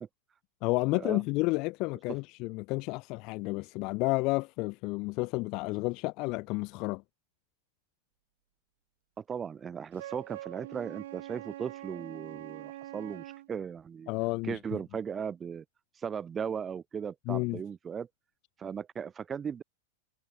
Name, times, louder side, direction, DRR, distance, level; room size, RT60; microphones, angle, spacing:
voice 1, 0.6-7.0 14.1-14.6 17.3-17.6, left 25 dB, 45° left, 0.3 m, -31 dB
voice 2, 9.2-14.1 14.4-15.6 16.0-18.1 18.6-19.6, right 7 dB, 20° right, 0.5 m, -37 dB
Wind instrument woodwind instrument, 9.9-13.5, right 14 dB, 70° right, 1.1 m, -44 dB
hypercardioid pair, 130°, 0 cm